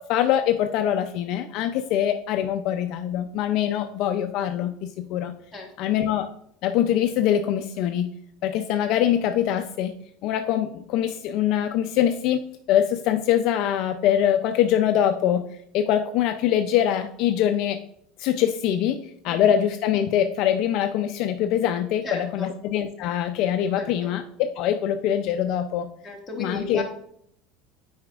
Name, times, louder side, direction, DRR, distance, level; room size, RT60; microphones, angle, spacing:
voice 1, 0.0-5.3 5.8-6.3 6.6-8.1 8.4-9.9 10.2-12.4 12.7-15.4 15.7-17.8 18.2-19.0 19.2-25.9 26.4-26.8, left 10 dB, 50° left, 7 dB, 0.4 m, -23 dB
voice 2, 5.5-6.0 19.2-19.5 22.0-22.5 23.7-24.1 26.0-26.8, left 2 dB, 10° left, -2 dB, 1.3 m, -36 dB
9.2 x 4.9 x 2.4 m, 0.69 s
cardioid pair, 160°, 0 cm